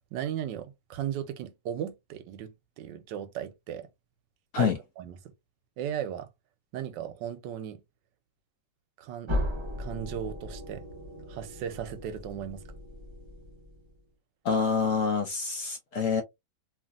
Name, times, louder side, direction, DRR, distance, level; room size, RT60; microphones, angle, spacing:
voice 1, 0.1-3.9 4.6-5.2 5.8-6.3 6.7-7.8 9.0-9.3 9.8-10.8 11.3-12.6, right 10 dB, 90° right, 1.3 m, -36 dB
sound 1, 9.3-14.0, left 1 dB, 30° right, 0.6 m, -36 dB
voice 2, 14.4-16.2, left 6 dB, 70° left, 0.7 m, -26 dB
3.0 x 2.6 x 2.4 m
omnidirectional pair, 1.9 m